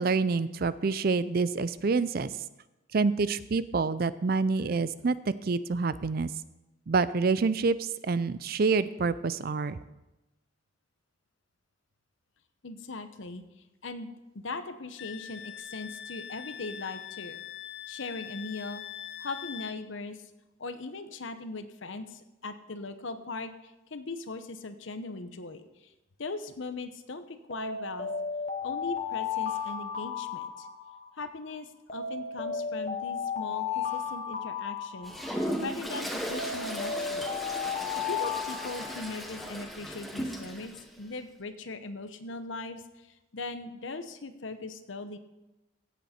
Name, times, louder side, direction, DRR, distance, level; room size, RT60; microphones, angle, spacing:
voice 1, 0.0-2.3 2.9-6.3 6.9-9.8, right 4 dB, 50° right, 15 dB, 0.4 m, -27 dB
voice 2, 12.6-13.4 13.8-17.4 17.9-18.8 19.2-20.2 20.6-25.9 26.2-28.1 28.6-30.7 31.2-35.1 35.6-37.3 37.9-45.2, left 3 dB, 75° left, 10 dB, 0.9 m, -39 dB
Wind instrument woodwind instrument, 15.0-19.8, left 9 dB, 55° left, 0.5 m, -42 dB
Alarm, 27.5-31.2 31.9-35.6 36.3-39.5, left 6 dB, 35° left, 1.1 m, -34 dB
Toilet flush, 35.0-40.8, equal, ahead, 1.1 m, -36 dB
16.0 x 8.3 x 4.4 m, 0.99 s
head